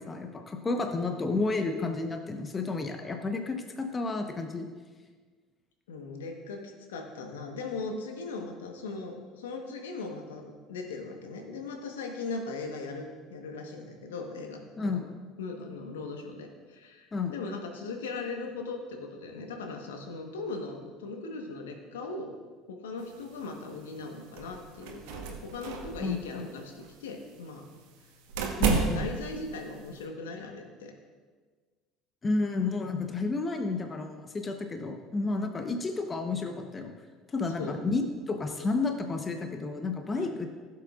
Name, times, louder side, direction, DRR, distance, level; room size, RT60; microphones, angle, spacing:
voice 1, 0.0-4.7 14.8-15.0 17.1-17.3 26.0-26.4 28.6-29.1 32.2-36.9 37.3-40.5, left 3 dB, 25° left, 5 dB, 1.0 m, -31 dB
voice 2, 5.9-15.1 15.4-22.3 22.7-27.6 28.6-30.9 37.6-37.8 40.1-40.3, left 3 dB, 80° left, 3 dB, 1.2 m, -39 dB
sound 1, 23.0-30.0, right 5 dB, 70° right, 1.2 m, -34 dB
16.0 x 7.6 x 2.5 m, 1.5 s
hypercardioid pair, 65°, 0 cm